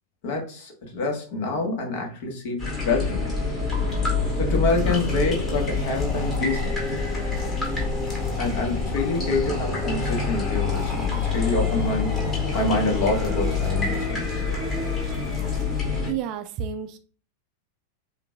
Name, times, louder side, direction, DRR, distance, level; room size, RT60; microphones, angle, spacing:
voice 1, 0.2-3.3 4.4-6.7 8.4-12.2 12.5-14.2, left 2 dB, 50° left, 1.4 m, -26 dB
sound 1, 2.6-16.1, left 4 dB, 15° left, 2.1 m, -26 dB
voice 2, 16.1-17.0, right 8 dB, 40° right, 0.4 m, -30 dB
7.2 x 2.6 x 2.4 m
figure-of-eight pair, 90°, 0 cm